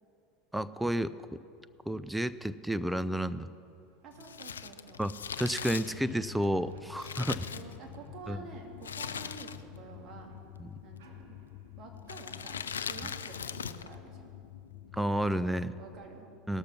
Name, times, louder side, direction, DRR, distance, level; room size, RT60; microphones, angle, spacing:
voice 1, 0.5-1.4 1.9-3.5 5.0-7.4 8.3-8.4 10.6-10.7 14.9-15.8 16.5-16.6, right 1 dB, 5° right, 14 dB, 0.5 m, -31 dB
sound 1, 3.4-3.5 3.8-11.8, right 4 dB, 65° right, 1.7 m, -58 dB
voice 2, 4.0-5.1 7.3-10.4 10.8-11.4 11.8-14.3 15.8-16.3 16.5-16.6, right 4 dB, 40° right, 1 dB, 2.4 m, -49 dB
Crumpling crinkling, 4.2-8.2 8.8-9.8 10.1-10.2 11.0-11.4 12.0-13.9 14.2-14.3, left 7 dB, 85° left, 0.4 m, -40 dB
sound 2, 5.9-15.9, left 11 dB, 65° left, 1.0 m, -50 dB
18.5 x 6.7 x 5.7 m, 2.5 s
hypercardioid pair, 80°, 0 cm